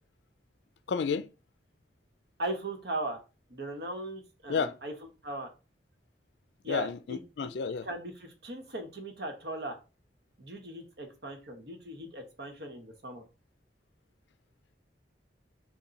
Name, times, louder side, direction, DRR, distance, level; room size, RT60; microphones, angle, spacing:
voice 1, 0.9-1.3 4.5-4.7 6.7-7.9, left 5 dB, 70° left, 0.4 m, -31 dB
voice 2, 2.4-3.2 3.5-4.9 5.2-5.5 6.6-7.5 7.8-9.8 10.4-13.2, right 1 dB, 60° right, 1.0 m, -38 dB
5.5 x 2.2 x 4.0 m
head